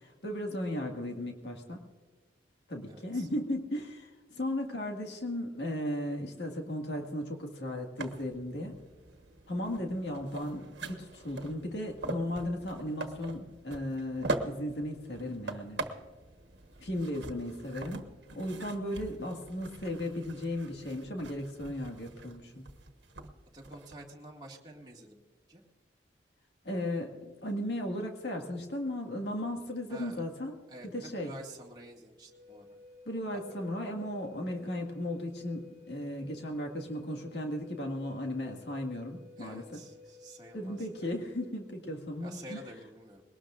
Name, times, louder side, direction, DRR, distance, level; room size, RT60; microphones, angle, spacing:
voice 1, 0.0-1.8 2.7-8.8 9.5-15.8 16.8-18.1 18.3-22.7 26.6-30.6 30.9-31.3 33.1-39.8 40.5-42.6, left 1 dB, 75° left, 2 dB, 1.9 m, -36 dB
voice 2, 2.9-3.3 23.5-25.2 25.5-25.6 29.9-30.2 30.7-32.7 33.3-33.4 39.4-41.2 42.2-43.2, right 1 dB, 25° right, -2 dB, 2.1 m, -49 dB
sound 1, 8.0-24.0, right 2 dB, 85° right, 1.3 m, -42 dB
Wind instrument woodwind instrument, 32.3-41.6, left 4 dB, 20° left, 2.0 m, -54 dB
21.5 x 18.5 x 2.5 m, 1.4 s
head